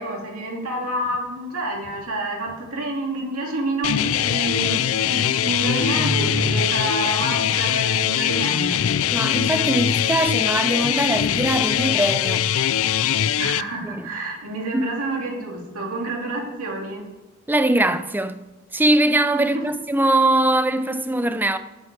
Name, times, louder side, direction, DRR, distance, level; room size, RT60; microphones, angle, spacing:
voice 1, 0.0-8.9 13.4-17.1 20.1-20.2, right 2 dB, 85° right, 2.7 m, -28 dB
sound 1, 3.8-13.6, left 10 dB, 65° left, 0.4 m, -22 dB
sound 2, 5.8-7.2, right 1 dB, 55° right, 2.7 m, -29 dB
voice 2, 9.1-12.5 13.8-14.1 14.7-14.9 17.5-18.4 18.7-21.6, right 1 dB, 10° right, 0.5 m, -21 dB
8.3 x 7.8 x 8.2 m
head